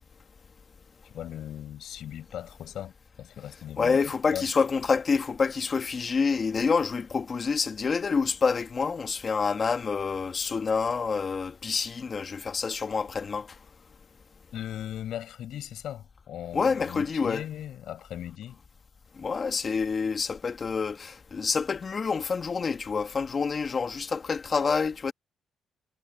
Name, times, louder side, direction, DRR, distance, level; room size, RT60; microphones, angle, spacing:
voice 1, 1.0-4.0 4.3-4.5 14.5-18.6, left 11 dB, 75° left, 5.1 m, -38 dB
voice 2, 3.8-13.5 16.5-17.4 19.2-25.1, left 5 dB, 40° left, 1.7 m, -27 dB
cardioid pair, 90°, 0 cm